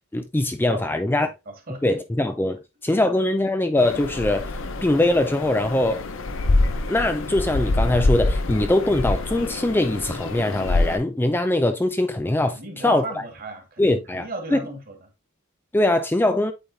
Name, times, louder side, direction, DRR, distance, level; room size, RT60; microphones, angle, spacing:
voice 1, 0.0-1.3 1.8-4.5 4.8-6.0 6.9-13.0 13.8-14.6 15.7-16.5, left 1 dB, 10° left, 0.4 m, -22 dB
voice 2, 1.2-1.8 2.9-3.0 12.5-14.9, right 2 dB, 45° right, 1.9 m, -36 dB
sound 1, 3.8-11.0, left 2 dB, 65° left, 0.8 m, -25 dB
8.7 x 3.9 x 2.7 m
head